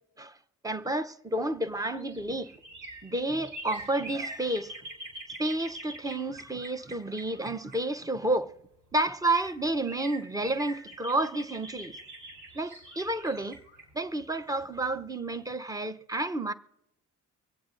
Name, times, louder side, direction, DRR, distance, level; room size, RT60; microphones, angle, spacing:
voice 1, 0.6-2.5 3.0-4.7 5.4-8.5 8.9-12.0 12.5-13.6 13.9-16.5, right 2 dB, 10° right, 0.7 m, -30 dB
sound 1, 1.5-8.3 8.9-9.0 9.2-15.0 15.3-15.4, right 1 dB, 80° right, 4.9 m, -44 dB
24.0 x 8.6 x 3.8 m
cardioid pair, 90°, 30 cm